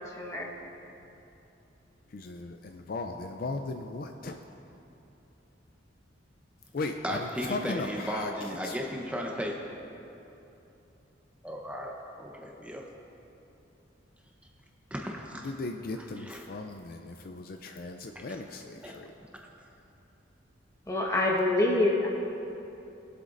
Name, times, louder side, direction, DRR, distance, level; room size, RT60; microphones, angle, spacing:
voice 1, 0.2-0.5 20.9-22.1, left 2 dB, 15° left, -1 dB, 1.1 m, -25 dB
voice 2, 2.1-4.4 6.7-8.3 8.6-8.8 15.4-19.1, left 3 dB, 45° left, 5 dB, 0.4 m, -37 dB
voice 3, 7.0-9.5 11.4-12.8 14.9-15.5 16.2-16.4 18.8-19.0, equal, 5° right, -1 dB, 0.8 m, -35 dB
20.0 x 7.9 x 2.5 m, 2.9 s
head